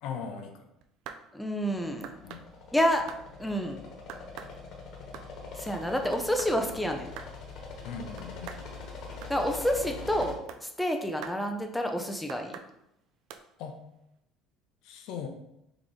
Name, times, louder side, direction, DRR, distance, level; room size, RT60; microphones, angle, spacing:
voice 1, 0.0-0.7 2.2-2.4 7.8-8.5 13.6-13.8 14.8-15.3, left 6 dB, 75° left, 5 dB, 0.6 m, -39 dB
sound 1, 0.8-1.3 2.0-2.5 3.1-3.3 4.1-4.5 4.9-5.3 6.1-6.6 7.2-7.3 8.2-8.7 9.2-9.4 10.2-10.6 11.2-11.4 12.3-12.7 13.3-13.4, right 8 dB, 70° right, 0.3 m, -43 dB
voice 2, 1.3-2.1 2.7-3.1 3.4-3.8 5.5-7.1 9.3-10.3 10.6-12.6, equal, 5° left, 3 dB, 0.5 m, -29 dB
sound 2, 1.7-10.4, left 4 dB, 55° left, 1.2 m, -43 dB
3.9 x 3.0 x 3.6 m, 0.82 s
supercardioid pair, 105°, 0 cm